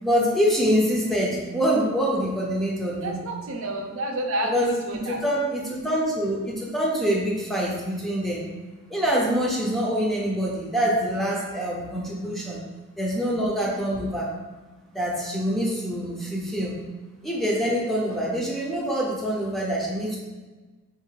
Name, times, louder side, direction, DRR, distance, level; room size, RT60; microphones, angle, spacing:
voice 1, 0.0-3.2 4.5-4.7 5.0-8.4 8.9-12.6 13.0-14.3 14.9-16.8 17.2-20.2, equal, ahead, -4 dB, 0.6 m, -25 dB
voice 2, 3.0-5.2 12.2-12.4, right 1 dB, 65° right, 3 dB, 0.6 m, -30 dB
3.7 x 2.5 x 4.5 m, 1.3 s
head